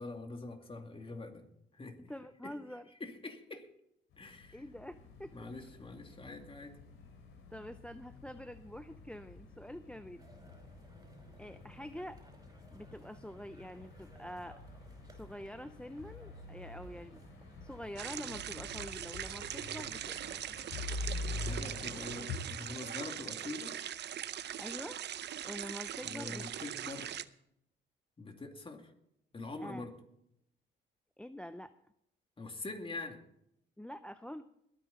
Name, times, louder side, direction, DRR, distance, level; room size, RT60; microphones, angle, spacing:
voice 1, 0.0-1.5 1.8-2.0 2.4-2.6 3.0-3.7 4.2-4.6 5.3-6.7 21.4-23.8 26.0-27.1 28.2-28.9 29.3-29.9 32.4-33.2, left 3 dB, 25° left, 4 dB, 2.5 m, -44 dB
voice 2, 2.0-2.8 4.5-5.3 7.5-10.2 11.4-12.2 12.7-14.6 15.1-17.3 17.6-20.5 24.6-25.0 25.4-26.5 29.6-29.9 31.2-31.7 33.8-34.4, equal, 5° left, 11 dB, 0.5 m, -46 dB
sound 1, 4.1-22.4, left 3 dB, 90° left, 3.3 m, -47 dB
sound 2, 10.2-18.2, right 2 dB, 20° right, 4.6 m, -58 dB
sound 3, 18.0-27.2, right 10 dB, 60° right, 0.7 m, -41 dB
21.5 x 9.5 x 4.1 m, 0.76 s
cardioid pair, 90°, 20 cm